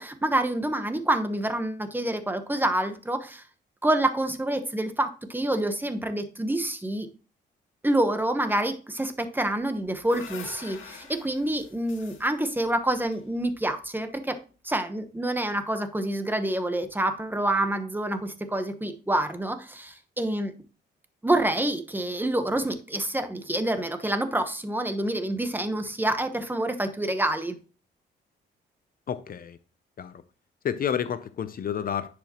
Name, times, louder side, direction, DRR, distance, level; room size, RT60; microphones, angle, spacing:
voice 1, 0.0-3.4 3.8-7.1 7.8-14.4 14.6-20.5 21.2-27.5, right 1 dB, 10° right, 1.1 m, -27 dB
sound 1, 9.6-13.9, left 6 dB, 75° left, 1.9 m, -46 dB
voice 2, 29.1-29.6 30.0-30.2 30.6-32.1, left 8 dB, 45° left, 0.6 m, -30 dB
10.0 x 4.9 x 3.0 m
cardioid pair, 90°, 20 cm